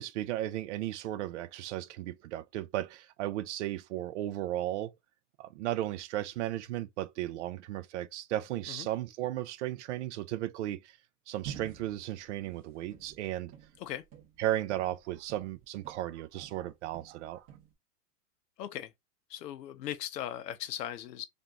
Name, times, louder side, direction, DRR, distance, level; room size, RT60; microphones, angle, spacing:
voice 1, 0.0-4.9 5.4-10.8 11.3-13.5 14.4-17.4, right 14 dB, 50° right, 0.4 m, -35 dB
sound 1, 11.4-16.1 16.4-17.7, right 9 dB, 30° right, 1.4 m, -49 dB
voice 2, 18.6-18.9 19.3-21.2, left 11 dB, 85° left, 0.7 m, -38 dB
3.5 x 2.5 x 2.7 m
hypercardioid pair, 135°, 48 cm